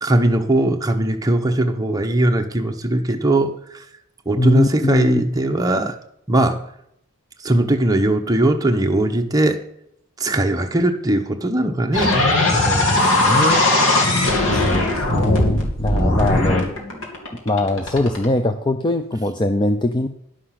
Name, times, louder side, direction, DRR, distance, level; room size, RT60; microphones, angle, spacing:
voice 1, 0.0-3.9 4.3-6.0 6.3-6.7 7.4-9.6 10.2-12.2 15.9-16.3, right 1 dB, 15° right, 4 dB, 0.9 m, -19 dB
voice 2, 4.4-5.3 12.5-13.7 14.5-16.8 17.5-20.1, left 2 dB, 20° left, 8 dB, 0.5 m, -21 dB
sound 1, 11.9-18.2, left 2 dB, 80° left, 2.6 m, -18 dB
11.0 x 6.6 x 5.8 m, 0.75 s
head